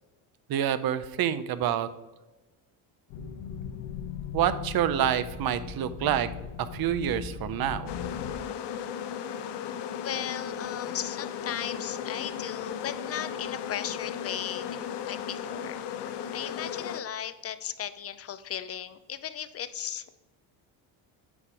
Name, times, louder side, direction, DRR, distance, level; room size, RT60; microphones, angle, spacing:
voice 1, 0.5-1.9 4.3-6.3 6.6-7.9, right 10 dB, 50° right, 13 dB, 0.7 m, -27 dB
sound 1, 3.1-8.3, left 7 dB, 85° left, 1.1 m, -38 dB
sound 2, 7.9-17.0, left 8 dB, 60° left, 0.8 m, -36 dB
voice 2, 9.9-14.7 15.1-15.8 16.3-20.2, left 10 dB, 30° left, 13 dB, 0.5 m, -36 dB
8.6 x 5.1 x 4.8 m, 1.1 s
cardioid pair, 120°, 48 cm